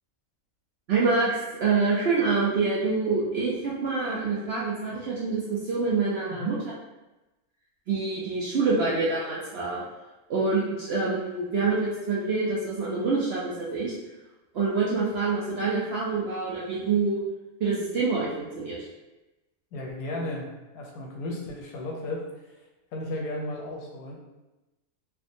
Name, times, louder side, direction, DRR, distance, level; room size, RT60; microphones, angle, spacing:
voice 1, 0.9-6.6 7.9-9.8 10.3-14.0 14.5-17.2 17.6-18.9, right 4 dB, 65° right, -6 dB, 0.6 m, -26 dB
voice 2, 19.7-22.6 22.9-24.1, left 1 dB, 80° left, -1 dB, 1.1 m, -34 dB
3.4 x 2.1 x 2.6 m, 1.0 s
omnidirectional pair, 1.5 m